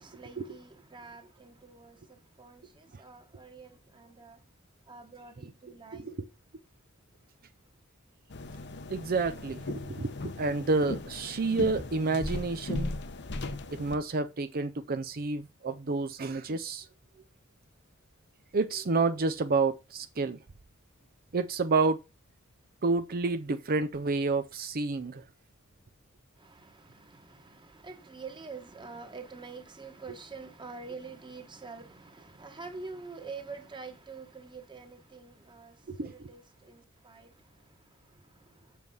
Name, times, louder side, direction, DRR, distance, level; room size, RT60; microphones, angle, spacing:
voice 1, 0.0-4.4 4.9-6.1 26.4-38.8, right 4 dB, 25° right, 1.4 m, -47 dB
voice 2, 5.9-6.3 8.9-12.9 13.7-16.9 18.5-20.4 21.3-22.0 22.8-25.2 35.9-36.3, right 3 dB, 45° right, 0.6 m, -29 dB
sound 1, 8.3-14.0, left 2 dB, 55° left, 0.9 m, -38 dB
7.5 x 6.3 x 5.4 m
head